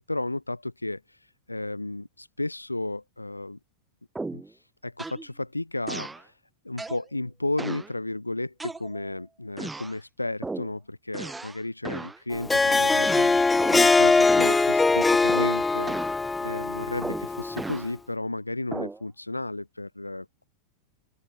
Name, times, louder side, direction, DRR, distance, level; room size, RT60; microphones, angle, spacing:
voice 1, 0.1-3.6 4.3-6.3 6.6-16.0 16.4-20.4, left 2 dB, 85° left, 1.0 m, -33 dB
sound 1, 4.1-4.5 5.0-5.3 5.9-6.2 6.8-7.1 7.6-7.9 8.6-9.1 9.6-10.0 10.4-10.7 11.1-11.6 11.8-12.2 13.0-13.9 14.3-14.7 15.3-15.6 15.9-16.2 17.0-17.9 18.7-19.0, right 3 dB, 10° right, 2.3 m, -35 dB
Harp, 12.3-17.8, left 3 dB, 10° left, 0.4 m, -22 dB
open air
figure-of-eight pair, 90°, 0 cm